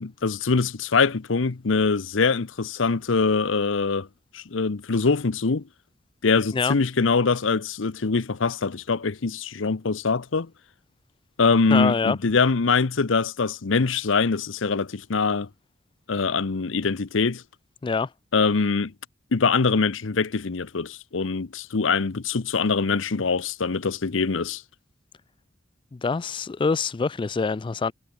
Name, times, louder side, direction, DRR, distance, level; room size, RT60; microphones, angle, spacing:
voice 1, 0.0-4.1 4.3-5.6 6.2-10.5 11.4-15.5 16.1-17.4 18.3-18.9 19.3-24.6, left 4 dB, 75° left, 0.8 m, -23 dB
voice 2, 11.7-12.2 17.8-18.1 25.9-27.9, left 4 dB, 25° left, 0.3 m, -25 dB
head